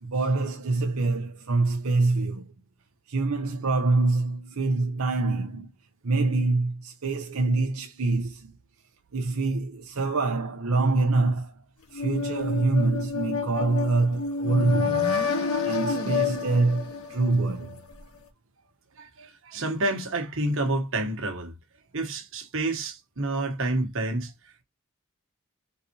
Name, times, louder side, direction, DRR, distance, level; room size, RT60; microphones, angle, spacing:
voice 1, 0.0-2.4 3.1-5.7 6.0-8.6 9.1-11.6 11.9-15.1 15.6-17.8, right 3 dB, 85° right, 0.7 m, -25 dB
sound 1, 11.9-17.8, left 5 dB, 80° left, 1.5 m, -29 dB
voice 2, 19.0-21.5 21.9-24.3, right 2 dB, 65° right, 1.3 m, -29 dB
4.1 x 4.1 x 2.9 m
head